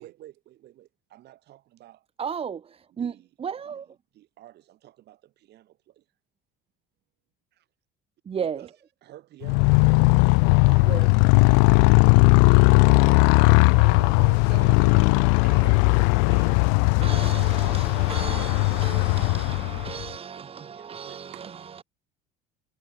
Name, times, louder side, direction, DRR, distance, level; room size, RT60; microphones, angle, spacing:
voice 1, 0.0-2.1 3.0-3.3 4.1-6.0 7.5-7.7 8.4-8.7 9.0-10.3 10.6-12.9 15.4-16.6 16.9-19.6 20.0-20.2 20.7-21.2, right 14 dB, 50° right, 7.1 m, -49 dB
voice 2, 2.2-4.0 8.3-8.7 10.8-11.1 17.0-21.8, right 7 dB, 25° right, 1.7 m, -35 dB
Motorcycle, 9.4-20.1, left 40 dB or more, 85° left, 1.0 m, -18 dB
voice 3, 13.3-16.0 21.3-21.4, right 33 dB, 90° right, 3.3 m, -42 dB
cardioid pair, 135°, 21 cm